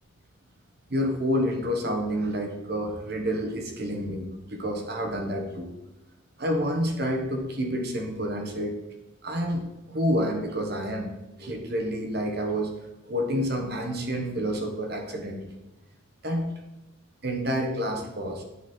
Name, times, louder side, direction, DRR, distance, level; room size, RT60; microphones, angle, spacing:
voice 1, 0.9-5.7 6.4-8.8 9.2-11.1 11.4-12.7 13.1-15.5 16.2-16.5 17.2-18.4, equal, 50° right, 3 dB, 1.2 m, -29 dB
9.2 x 4.1 x 4.4 m, 1.0 s
head